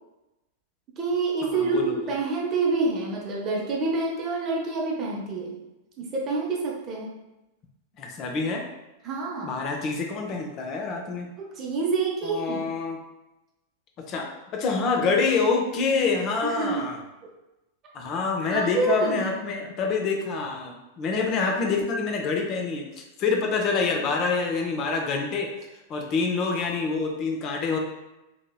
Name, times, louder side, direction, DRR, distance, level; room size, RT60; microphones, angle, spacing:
voice 1, 1.0-5.6 6.0-7.1 9.0-9.5 11.4-12.6 16.4-16.9 18.4-19.3, right 3 dB, 30° right, -2 dB, 0.6 m, -27 dB
voice 2, 1.5-2.0 8.0-8.6 9.4-11.3 12.2-13.0 14.1-14.3 14.5-17.0 17.9-25.5 25.9-27.8, left 4 dB, 35° left, 1 dB, 0.5 m, -26 dB
2.8 x 2.8 x 2.2 m, 0.98 s
figure-of-eight pair, 90°, 0 cm